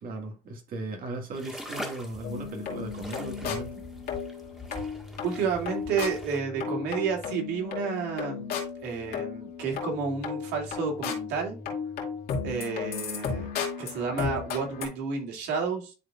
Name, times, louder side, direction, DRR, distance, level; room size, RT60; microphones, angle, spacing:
voice 1, 0.0-3.8, right 2 dB, 60° right, 1.8 m, -37 dB
sound 1, 1.3-6.4, equal, 5° right, 1.6 m, -43 dB
sound 2, 2.2-14.9, left 6 dB, 65° left, 2.4 m, -35 dB
voice 2, 5.2-11.6 12.4-13.5 13.8-15.9, right 5 dB, 85° right, 2.3 m, -31 dB
11.0 x 3.9 x 2.4 m
cardioid pair, 110°, 17 cm